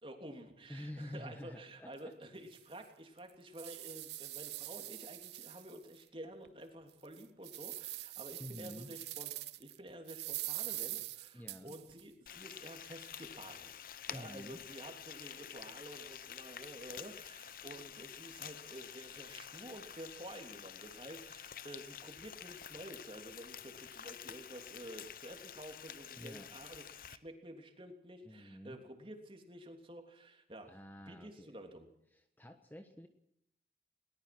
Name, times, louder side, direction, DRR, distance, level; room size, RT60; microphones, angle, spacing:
voice 1, 0.0-9.3 9.6-13.7 14.1-30.7 31.1-31.9, right 1 dB, 30° right, 4 dB, 3.3 m, -50 dB
voice 2, 0.7-2.1 8.4-8.9 11.3-11.7 14.1-14.6 26.2-26.5 28.2-28.8 30.7-31.5 32.1-33.1, left 1 dB, 10° left, 7 dB, 1.2 m, -48 dB
sound 1, 1.9-2.0 2.5-2.6 3.2-6.0 6.4-6.5 7.0-9.8 10.1-12.0, right 16 dB, 70° right, 0.9 m, -44 dB
Frying (food), 12.3-27.2, left 9 dB, 50° left, 0.8 m, -49 dB
21.5 x 19.5 x 6.1 m, 0.76 s
head